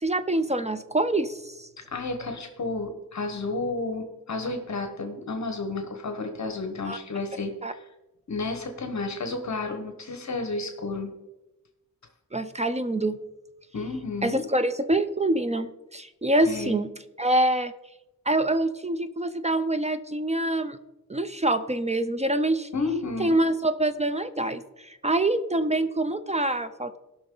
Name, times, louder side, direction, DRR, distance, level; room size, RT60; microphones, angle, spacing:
voice 1, 0.0-1.7 6.9-7.0 7.6-7.7 12.3-13.2 14.2-16.9 17.2-17.7 18.3-20.8 21.1-22.7 23.2-27.0, right 1 dB, 20° right, 11 dB, 0.4 m, -25 dB
voice 2, 1.9-7.9 8.3-11.1 13.7-14.4 16.4-16.8 22.7-23.3, left 3 dB, 50° left, 5 dB, 1.1 m, -31 dB
16.5 x 5.9 x 3.8 m, 1.0 s
wide cardioid pair, 145°, 35 cm